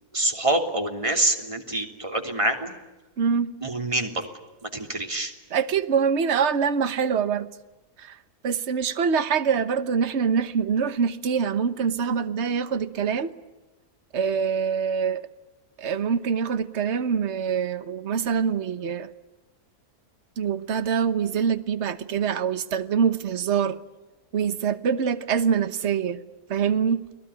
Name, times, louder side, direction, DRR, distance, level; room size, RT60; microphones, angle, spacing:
voice 1, 0.1-2.7 3.6-4.3 4.6-5.3, right 2 dB, 20° right, 3.1 m, -26 dB
voice 2, 3.2-3.5 5.5-7.5 8.0-8.2 8.4-13.3 14.1-15.3 15.8-19.1 20.4-23.8 24.3-26.2 26.5-27.1, right 6 dB, 50° right, 1.3 m, -24 dB
29.5 x 20.0 x 9.8 m
omnidirectional pair, 1.6 m